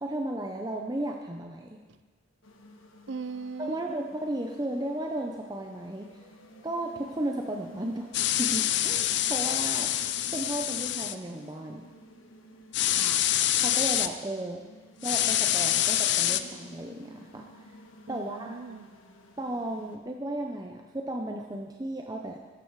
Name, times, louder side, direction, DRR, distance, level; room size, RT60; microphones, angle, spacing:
voice 1, 0.0-1.8 3.6-6.1 6.6-8.1 8.4-9.9 10.3-11.9 13.6-14.6 15.0-17.7 18.1-18.6 19.4-22.4, right 1 dB, 20° right, 2 dB, 0.7 m, -34 dB
sound 1, 2.4-20.0, equal, 75° left, 1.5 m, -52 dB
voice 2, 3.1-3.8 12.8-13.3 18.1-18.9, right 4 dB, 55° right, 13 dB, 0.5 m, -40 dB
sound 2, 8.1-11.1 12.7-14.1 15.0-16.4, left 12 dB, 55° left, 0.6 m, -26 dB
15.0 x 13.0 x 4.7 m, 1.3 s
head